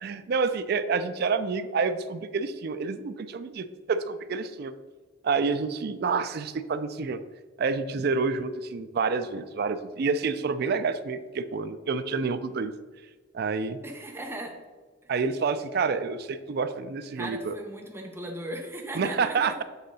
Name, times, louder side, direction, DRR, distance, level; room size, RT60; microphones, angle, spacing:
voice 1, 0.0-4.7 5.2-7.2 7.6-12.7 13.3-13.8 15.1-17.6 19.0-19.6, right 4 dB, 55° right, 11 dB, 0.4 m, -28 dB
voice 2, 13.8-14.5 17.2-19.5, right 1 dB, 15° right, 1 dB, 0.8 m, -37 dB
7.2 x 3.8 x 4.0 m, 1.3 s
head